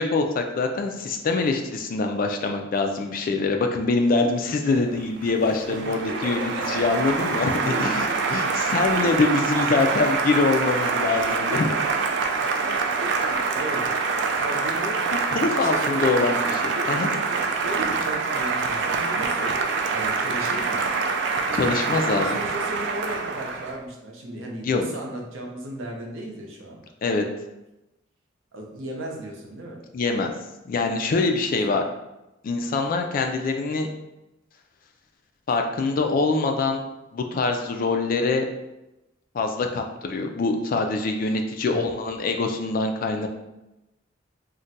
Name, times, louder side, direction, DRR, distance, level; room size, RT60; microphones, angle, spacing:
voice 1, 0.0-11.7 15.3-17.1 21.5-22.4 24.6-24.8 27.0-27.2 29.9-30.3 30.7-31.8 32.4-33.9 35.5-36.8 37.1-38.5 39.3-43.3, left 3 dB, 45° left, 4 dB, 0.3 m, -24 dB
Applause, 4.9-23.8, right 4 dB, 60° right, 0.3 m, -25 dB
voice 2, 6.1-6.9 7.6-8.6 8.9-9.8 10.9-11.9 12.6-12.7 13.0-15.0 15.5-16.2 16.7-19.5 19.9-20.9 22.1-26.8 28.5-29.8 31.7-31.8 41.6-41.9, right 1 dB, 85° right, 0 dB, 0.7 m, -36 dB
2.5 x 2.2 x 3.9 m, 0.96 s
head